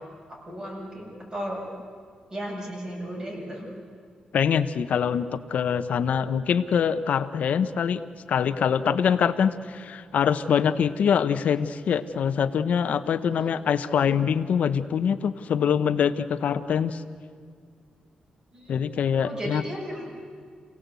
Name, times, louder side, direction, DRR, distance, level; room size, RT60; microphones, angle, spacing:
voice 1, 0.0-1.6 2.3-3.8 13.3-13.6 18.5-18.8 19.2-20.1, equal, 30° right, -2 dB, 7.4 m, -35 dB
voice 2, 4.3-8.0 8.3-17.0 18.7-19.6, left 7 dB, 75° left, 10 dB, 1.0 m, -24 dB
28.0 x 17.5 x 8.3 m, 2.1 s
wide cardioid pair, 115°, 3 cm